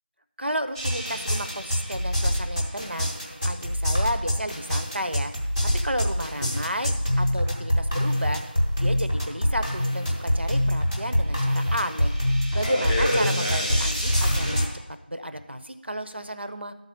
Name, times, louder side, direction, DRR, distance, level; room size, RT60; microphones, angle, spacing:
voice 1, 0.4-5.3 5.6-8.4 8.8-14.6 15.1-16.7, equal, 90° right, 8 dB, 0.9 m, -32 dB
sound 1, 0.7-14.6, equal, 10° left, 0.7 m, -25 dB
11.5 x 4.1 x 7.1 m, 0.97 s
figure-of-eight pair, 175°, 6 cm